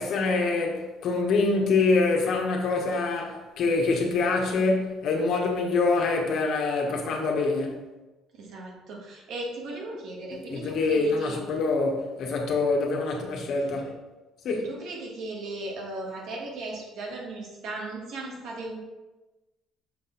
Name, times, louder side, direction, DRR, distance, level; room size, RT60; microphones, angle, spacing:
voice 1, 0.0-7.8 10.3-13.9 14.4-14.7, left 3 dB, 65° left, 1.2 m, -25 dB
voice 2, 8.3-11.4 14.6-18.8, right 2 dB, 70° right, 1.6 m, -37 dB
6.6 x 4.1 x 3.9 m
supercardioid pair, 90°, 0 cm